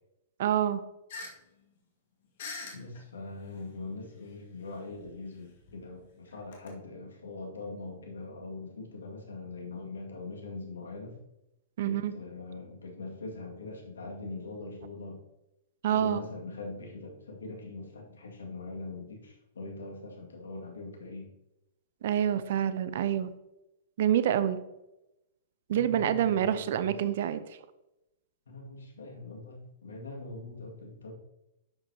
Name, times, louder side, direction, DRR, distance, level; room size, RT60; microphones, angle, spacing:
voice 1, 0.4-0.8 11.8-12.1 15.8-16.2 22.0-23.3 24.0-24.6 25.7-27.4, right 10 dB, 60° right, 13 dB, 0.6 m, -27 dB
sound 1, 1.1-1.3 1.6-1.7 2.4-3.1 3.9-4.0 5.0-6.7, left 3 dB, 55° left, 2.0 m, -42 dB
voice 2, 2.7-11.2 11.8-15.2 15.9-21.3 25.7-27.0 28.5-31.1, left 3 dB, 75° left, 1 dB, 2.1 m, -42 dB
10.5 x 7.6 x 2.8 m, 0.92 s
figure-of-eight pair, 110°, 0 cm